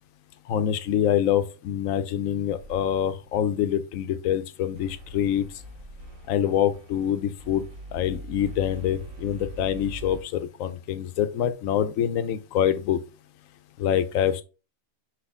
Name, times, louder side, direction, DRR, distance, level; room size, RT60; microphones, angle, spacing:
voice 1, 0.5-5.5 6.3-7.7 7.9-13.0 13.8-14.4, left 10 dB, 80° left, 1.0 m, -25 dB
sound 1, 2.6-3.3 4.7-10.2, right 2 dB, 75° right, 1.3 m, -43 dB
5.9 x 2.5 x 3.5 m
omnidirectional pair, 1.4 m